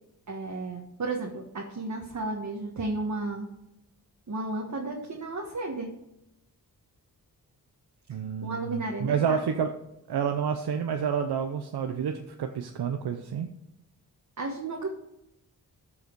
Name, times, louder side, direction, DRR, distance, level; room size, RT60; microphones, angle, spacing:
voice 1, 0.3-3.5 4.3-5.9 8.1-9.4 14.4-14.9, right 2 dB, 50° right, 0 dB, 1.5 m, -33 dB
voice 2, 8.1-9.8 10.1-13.5, right 7 dB, 85° right, 6 dB, 0.7 m, -29 dB
14.0 x 4.8 x 4.6 m, 0.86 s
cardioid pair, 70°, 38 cm